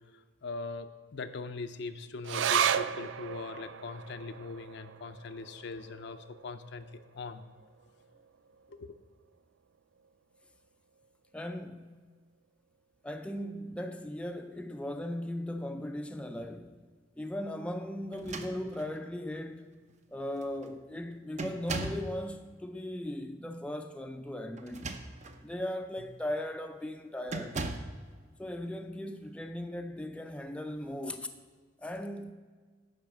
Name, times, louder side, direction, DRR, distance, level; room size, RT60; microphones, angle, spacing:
voice 1, 0.1-6.9 7.1-7.4 8.7-8.9, left 4 dB, 65° left, 0.5 m, -41 dB
sound 1, 2.2-9.0 9.3-9.4 9.8-10.4 11.0-11.1, right 8 dB, 75° right, 0.3 m, -35 dB
voice 2, 11.3-12.0 13.0-16.8 17.2-19.7 20.1-24.8 25.4-27.6 28.4-31.3 31.8-32.3, left 1 dB, 5° left, 0.4 m, -38 dB
sound 2, 18.1-19.0 19.9-20.0 20.4-20.7 21.4-22.1 24.6-25.4 26.0-26.2 27.3-28.0, right 2 dB, 40° right, 0.6 m, -38 dB
10.5 x 4.7 x 6.2 m
head